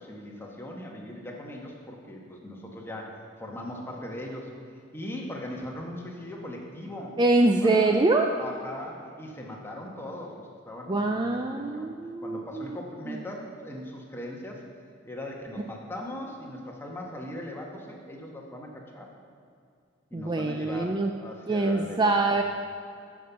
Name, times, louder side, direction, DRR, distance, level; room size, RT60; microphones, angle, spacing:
voice 1, 0.0-4.5 4.9-7.2 7.6-8.0 8.3-11.9 12.2-14.6 15.0-19.1 20.1-22.4, left 1 dB, 10° left, -1 dB, 1.4 m, -39 dB
voice 2, 7.2-8.3 10.9-12.8 13.1-13.2 20.1-21.1 21.5-22.4, right 2 dB, 25° right, 4 dB, 0.4 m, -24 dB
9.3 x 6.1 x 6.9 m, 2.4 s
head